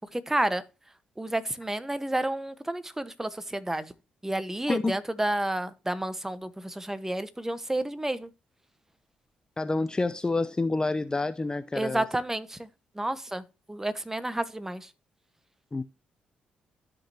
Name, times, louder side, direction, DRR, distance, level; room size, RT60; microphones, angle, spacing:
voice 1, 0.1-0.6 1.2-3.9 4.2-8.3 11.7-12.7 12.9-14.9, right 1 dB, 10° right, 1.2 m, -30 dB
voice 2, 9.6-12.0 15.7-15.8, left 3 dB, 25° left, 0.6 m, -28 dB
13.0 x 5.2 x 2.8 m
hypercardioid pair, 50°, 3 cm